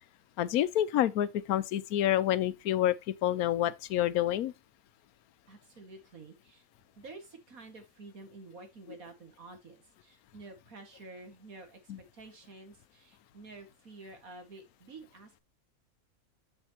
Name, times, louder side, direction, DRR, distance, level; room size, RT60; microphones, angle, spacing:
voice 1, 0.4-4.5 11.9-12.0, left 12 dB, 90° left, 1.1 m, -28 dB
voice 2, 5.5-6.6 7.0-15.4, right 3 dB, 75° right, 2.3 m, -50 dB
7.2 x 7.2 x 2.9 m
omnidirectional pair, 1.5 m